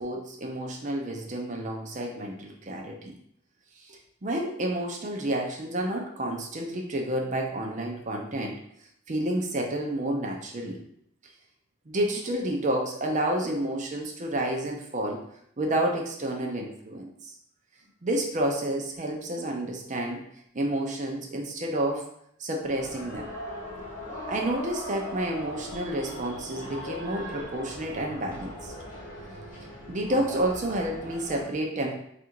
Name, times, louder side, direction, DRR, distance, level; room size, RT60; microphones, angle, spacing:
voice 1, 0.0-3.2 3.9-8.6 9.1-10.8 11.9-15.2 15.6-17.1 18.0-20.2 20.5-22.0 22.4-23.3 24.3-28.7 29.9-32.0, right 1 dB, 35° right, 1 dB, 0.5 m, -30 dB
sound 1, 22.7-31.5, left 1 dB, 40° left, 1.4 m, -40 dB
3.6 x 2.5 x 4.4 m, 0.71 s
head